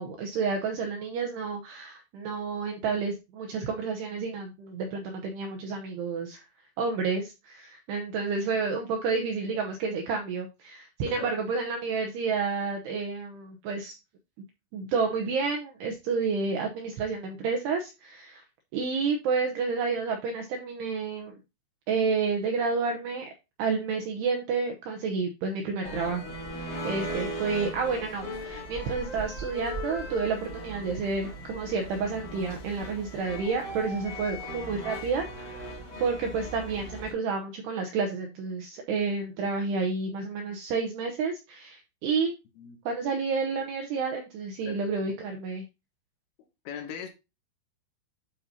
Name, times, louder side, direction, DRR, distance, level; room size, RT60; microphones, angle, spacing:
voice 1, 0.0-6.4 6.8-14.0 14.7-18.4 18.7-21.3 21.9-23.3 23.6-26.3 26.5-42.3 42.9-45.6, right 4 dB, 85° right, 2.4 m, -30 dB
sound 1, 25.8-37.1, equal, 30° left, 2.2 m, -38 dB
voice 2, 44.7-45.1 46.7-47.1, left 7 dB, 80° left, 3.8 m, -40 dB
12.0 x 4.1 x 2.7 m
omnidirectional pair, 5.8 m